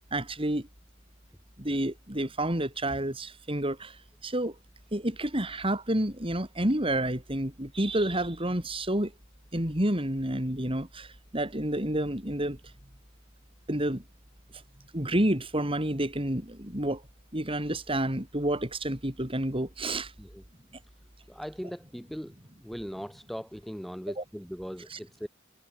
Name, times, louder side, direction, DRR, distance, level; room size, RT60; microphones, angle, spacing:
voice 1, 0.1-0.7 1.6-4.0 4.2-4.5 4.9-9.1 9.5-12.6 13.7-14.0 14.9-17.0 17.3-20.1 24.2-24.3 24.9-25.0, right 1 dB, 25° right, 4.9 m, -29 dB
voice 2, 21.3-22.3 22.6-25.3, equal, ahead, 3.6 m, -39 dB
head